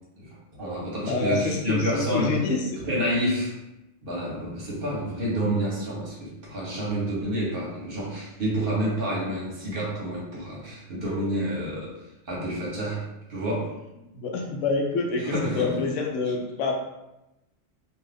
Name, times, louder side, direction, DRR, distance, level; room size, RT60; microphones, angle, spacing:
voice 1, 0.2-2.4 2.8-3.5 4.0-11.9 12.3-13.0 13.3-13.7 15.2-15.8, right 1 dB, 50° right, -5 dB, 1.0 m, -29 dB
voice 2, 1.0-2.8 14.1-16.7, left 4 dB, 75° left, 1 dB, 0.9 m, -27 dB
2.6 x 2.4 x 3.4 m, 0.94 s
omnidirectional pair, 1.3 m